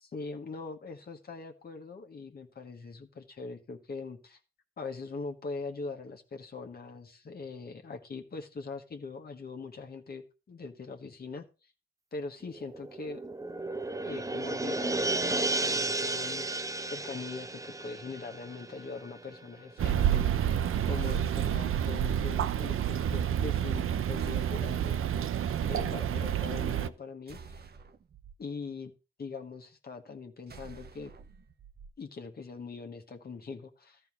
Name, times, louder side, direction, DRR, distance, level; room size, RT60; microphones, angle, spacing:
voice 1, 0.1-4.4 4.8-11.7 12.1-13.2 14.0-16.5 16.9-20.6 20.9-25.0 25.6-27.7 28.4-28.9 29.2-31.1 32.0-34.0, left 4 dB, 45° left, 3 dB, 1.4 m, -42 dB
sound 1, 12.5-19.5 19.8-19.9, right 2 dB, 15° right, 0.8 m, -33 dB
sound 2, 19.8-26.9, right 10 dB, 80° right, 0.7 m, -29 dB
sound 3, 21.0-22.1 24.2-25.2 27.3-28.4 30.5-31.9, right 5 dB, 50° right, 1.0 m, -50 dB
13.0 x 4.6 x 7.5 m, 0.32 s
wide cardioid pair, 115°, 21 cm